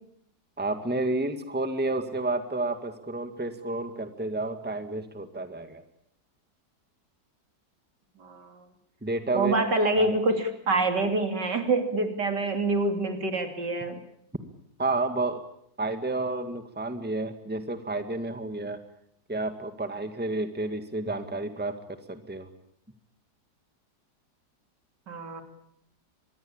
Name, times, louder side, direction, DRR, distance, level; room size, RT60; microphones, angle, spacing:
voice 1, 0.6-5.8 9.0-9.5 10.0-10.1 14.8-15.4 15.8-18.8 19.3-21.7 22.1-22.5, right 2 dB, 5° right, 8 dB, 1.8 m, -30 dB
voice 2, 8.2-8.6 9.3-14.0 25.1-25.4, right 2 dB, 75° right, 6 dB, 3.6 m, -26 dB
25.0 x 21.5 x 8.8 m, 0.71 s
omnidirectional pair, 1.9 m